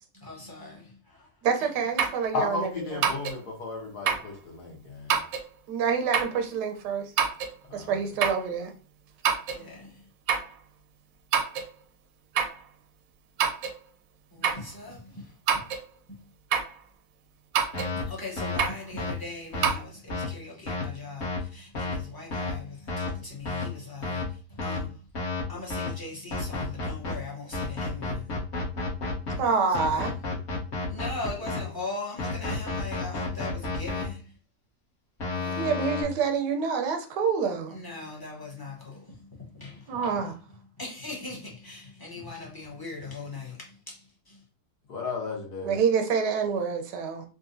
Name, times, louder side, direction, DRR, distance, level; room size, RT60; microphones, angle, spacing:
voice 1, 0.2-0.8 9.5-9.9 14.4-15.0 18.0-22.6 23.0-24.2 24.6-24.9 25.5-28.2 30.9-34.1 35.4-35.6 37.7-38.7 39.6-39.7 40.8-43.5, left 3 dB, 20° left, 0.6 m, -39 dB
voice 2, 1.4-3.0 5.7-7.1 7.7-8.7 29.4-30.1 35.6-37.7 39.9-40.3 45.6-47.2, right 6 dB, 90° right, 1.2 m, -27 dB
sound 1, 2.0-2.2 3.0-3.4 4.1-4.3 5.1-5.5 6.1-6.4 7.2-7.5 8.2-8.5 9.2-9.6 10.3-10.5 11.3-11.7 12.3-12.6 13.4-13.8 14.4-14.7 15.5-15.9 16.5-16.8 17.5-17.9 18.6-18.8 19.6-19.8, right 7 dB, 70° right, 0.9 m, -26 dB
voice 3, 2.3-5.2 7.7-8.0 31.1-31.8 44.9-45.8, left 3 dB, 75° left, 1.5 m, -34 dB
sound 2, 17.7-18.0 18.4-18.6 19.0-19.1 19.5-19.7 20.1-20.2 20.7-20.8 21.2-21.4 21.7-22.0 22.3-22.5 22.9-23.1 23.4-23.6 24.0-24.2 24.6-24.8 25.1-25.4 25.7-25.9 26.3-27.1 27.5-29.3 29.7-31.6 32.2-34.0 35.2-36.0, left 3 dB, 45° left, 1.1 m, -31 dB
3.9 x 2.4 x 2.5 m
omnidirectional pair, 1.7 m